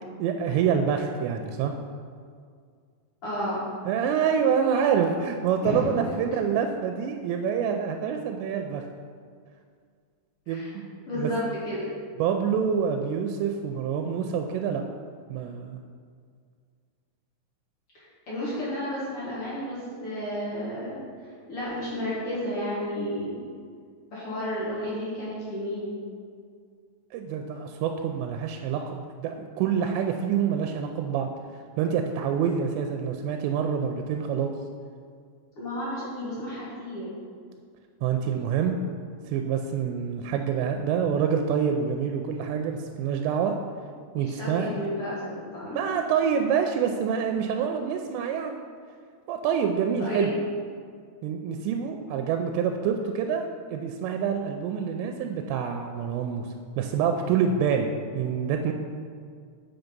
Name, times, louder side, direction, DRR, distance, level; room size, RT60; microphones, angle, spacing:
voice 1, 0.2-1.7 3.9-8.8 10.5-10.9 11.2-11.3 12.2-14.8 15.3-15.8 27.1-31.3 31.8-34.5 38.0-38.8 39.3-43.6 44.2-44.7 45.7-48.6 49.3-50.3 51.2-53.4 53.7-56.5 56.8-58.7, right 7 dB, 90° right, 5 dB, 2.8 m, -26 dB
voice 2, 3.2-3.6 5.6-5.9 10.5-10.7 11.1-11.9 17.9-21.0 21.5-23.4 24.1-25.9 35.5-37.1 44.1-45.8 50.0-50.3, equal, 55° left, -8 dB, 1.6 m, -32 dB
6.9 x 5.8 x 5.2 m, 2.1 s
omnidirectional pair, 5.0 m